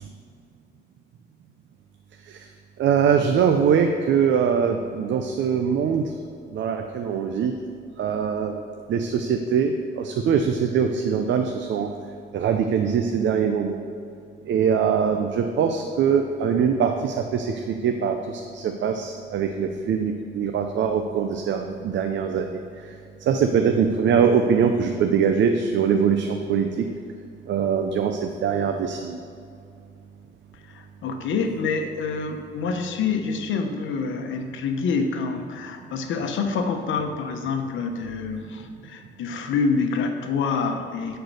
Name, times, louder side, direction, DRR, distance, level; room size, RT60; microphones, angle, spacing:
voice 1, 2.8-6.0 6.5-7.5 8.0-8.6 8.9-11.9 12.3-13.8 14.5-22.6 23.3-26.7 27.5-29.2, right 7 dB, 65° right, 5 dB, 0.7 m, -22 dB
voice 2, 30.7-41.2, left 5 dB, 75° left, 5 dB, 1.0 m, -27 dB
10.5 x 4.6 x 6.7 m, 2.4 s
cardioid pair, 90°, 20 cm